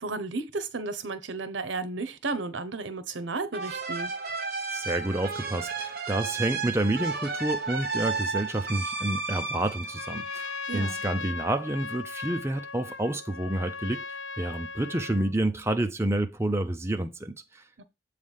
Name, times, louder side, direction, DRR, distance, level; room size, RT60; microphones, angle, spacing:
voice 1, 0.0-4.1 10.7-11.0 17.8-17.9, right 3 dB, 85° right, 0.9 m, -33 dB
sound 1, 3.5-11.0, right 4 dB, 55° right, 1.3 m, -33 dB
voice 2, 4.7-17.6, right 1 dB, 15° right, 0.6 m, -29 dB
Trumpet, 9.8-15.3, left 4 dB, 80° left, 0.6 m, -38 dB
7.6 x 3.3 x 5.5 m
head